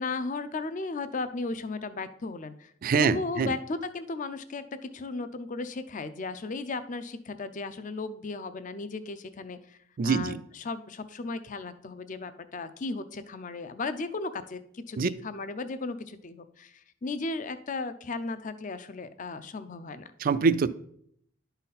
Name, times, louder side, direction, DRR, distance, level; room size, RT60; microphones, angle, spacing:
voice 1, 0.0-2.7 3.0-4.6 4.9-9.8 10.0-16.7 17.0-20.1, left 3 dB, 40° left, 12 dB, 0.5 m, -35 dB
voice 2, 2.8-3.5 10.0-10.4 15.0-15.1 20.2-20.7, right 5 dB, 45° right, 15 dB, 0.3 m, -24 dB
11.5 x 4.0 x 4.1 m, 0.67 s
head